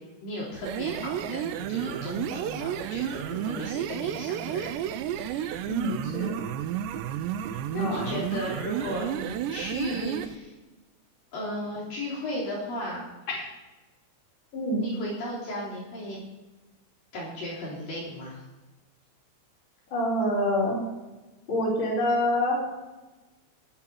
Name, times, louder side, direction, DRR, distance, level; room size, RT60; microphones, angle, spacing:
voice 1, 0.2-4.8 5.2-5.7 7.7-10.6 11.3-13.0 14.8-16.2 17.1-18.4, left 1 dB, 50° left, -6 dB, 4.7 m, -35 dB
sound 1, 0.6-10.4, right 10 dB, 85° right, 2.7 m, -32 dB
voice 2, 5.7-6.3 7.7-8.1 13.3-13.4 14.5-14.8 19.9-20.8 21.5-22.6, left 1 dB, 25° left, -4 dB, 4.4 m, -26 dB
19.5 x 7.8 x 4.6 m, 1.1 s
omnidirectional pair, 5.6 m